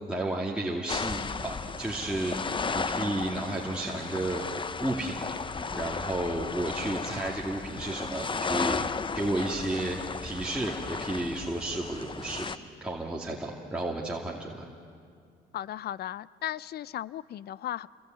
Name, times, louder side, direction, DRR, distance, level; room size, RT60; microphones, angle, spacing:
voice 1, 0.1-4.5 4.8-8.9 9.1-12.5 12.8-14.7, right 1 dB, 5° right, -3 dB, 2.6 m, -32 dB
sound 1, 0.9-12.6, left 4 dB, 25° left, 0.8 m, -34 dB
voice 2, 15.5-17.9, left 12 dB, 65° left, 20 dB, 0.6 m, -36 dB
28.5 x 22.5 x 9.2 m, 2.3 s
cardioid pair, 85°, 18 cm